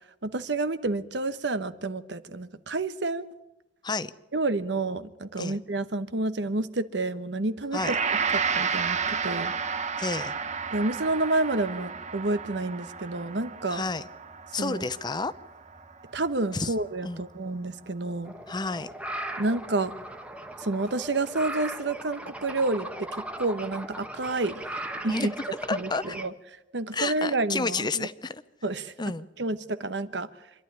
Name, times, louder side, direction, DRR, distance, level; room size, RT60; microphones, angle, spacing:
voice 1, 0.2-3.2 4.3-8.0 8.3-9.5 10.7-13.8 14.6-14.8 16.1-18.3 19.4-19.9 20.6-25.3 25.7-26.3 26.7-28.1 28.6-28.9 29.4-30.3, right 2 dB, 70° right, 12 dB, 1.0 m, -29 dB
Gong, 7.8-17.0, right 6 dB, 40° right, 1.1 m, -32 dB
voice 2, 10.0-10.3 13.7-14.0 14.5-15.3 16.5-16.7 17.0-17.2 18.5-18.9 25.1-25.3 25.7-26.1 26.9-28.4 29.0-29.2, left 3 dB, 25° left, 15 dB, 0.7 m, -30 dB
sound 1, 18.2-26.3, right 1 dB, 5° right, 1.1 m, -38 dB
26.0 x 11.5 x 9.9 m, 0.97 s
head